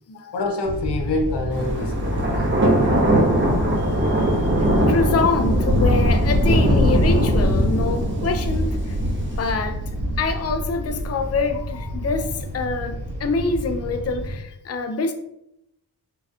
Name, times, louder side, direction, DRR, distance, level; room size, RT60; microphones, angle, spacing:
voice 1, 0.3-2.6 3.8-4.9, left 2 dB, 90° left, 3 dB, 0.7 m, -28 dB
sound 1, 0.6-14.4, equal, 75° right, 1.3 m, -31 dB
Thunder, 1.5-11.4, equal, 30° right, 1.2 m, -21 dB
voice 2, 4.9-9.0 9.4-9.8 10.2-15.1, left 4 dB, 40° left, 7 dB, 0.5 m, -25 dB
4.0 x 3.3 x 2.4 m, 0.80 s
cardioid pair, 55°, 40 cm